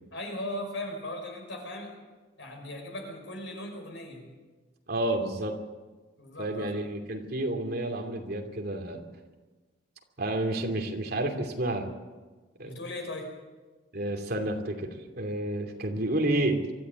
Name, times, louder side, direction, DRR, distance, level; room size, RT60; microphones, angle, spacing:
voice 1, 0.1-2.0 2.4-4.3 6.2-6.7 12.6-13.4, left 1 dB, 80° left, 3 dB, 5.7 m, -38 dB
voice 2, 4.9-5.6 6.4-9.0 10.2-11.9 12.6-12.7 13.9-16.6, right 1 dB, 55° right, 3 dB, 2.8 m, -30 dB
24.0 x 14.0 x 8.3 m, 1.3 s
head